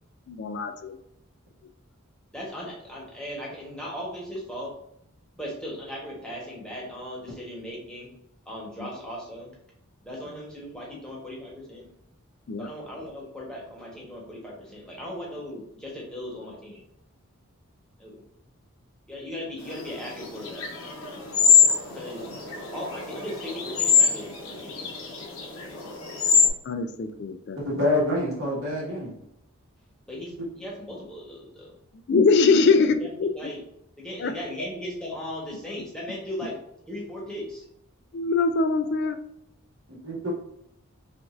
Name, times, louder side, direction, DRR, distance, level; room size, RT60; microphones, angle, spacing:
voice 1, 0.3-0.9 12.5-12.7 26.7-27.6 32.1-33.3 34.2-34.3 38.1-39.2, left 4 dB, 50° left, 9 dB, 0.3 m, -22 dB
voice 2, 2.3-4.8 5.3-8.1 8.5-9.5 10.0-11.8 12.6-16.8 18.0-18.2 19.1-20.7 21.9-22.2 22.7-24.9 30.1-31.8 32.5-33.6 34.0-36.6 36.9-37.7 38.8-39.1, equal, 5° left, -4 dB, 1.0 m, -37 dB
sound 1, 19.7-26.5, left 6 dB, 70° left, 0.9 m, -23 dB
voice 3, 27.6-29.1 39.9-40.3, left 1 dB, 75° right, -4 dB, 1.6 m, -26 dB
5.9 x 2.5 x 2.5 m, 0.75 s
head